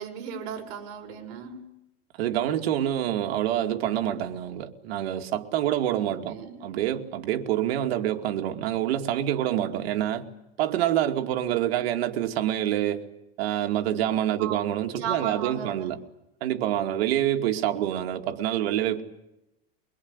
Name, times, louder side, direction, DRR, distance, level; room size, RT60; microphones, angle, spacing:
voice 1, 0.0-1.7 5.9-6.6 14.4-14.7 14.9-15.9, right 8 dB, 60° right, 6.5 m, -36 dB
voice 2, 2.2-10.3 10.6-13.0 13.4-16.0 16.4-19.0, right 11 dB, 80° right, 2.5 m, -27 dB
23.5 x 23.5 x 9.7 m
supercardioid pair, 160°, 31 cm